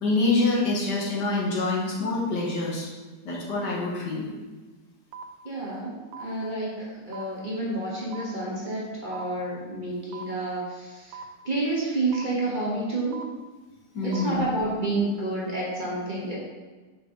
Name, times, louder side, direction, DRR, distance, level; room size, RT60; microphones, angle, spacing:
voice 1, 0.0-2.9 3.2-4.2 13.9-14.4, left 2 dB, 75° left, -4 dB, 1.9 m, -26 dB
sound 1, 5.1-5.2 6.1-6.2 7.1-7.2 8.1-8.2 9.1-9.2 10.1-10.2 11.1-11.2 12.1-12.2 13.1-13.2 14.1-14.2, right 7 dB, 85° right, 1.2 m, -39 dB
voice 2, 5.4-11.2 11.4-13.2 14.0-16.3, right 2 dB, 35° right, -6 dB, 1.1 m, -29 dB
5.8 x 4.7 x 3.8 m, 1.3 s
omnidirectional pair, 1.9 m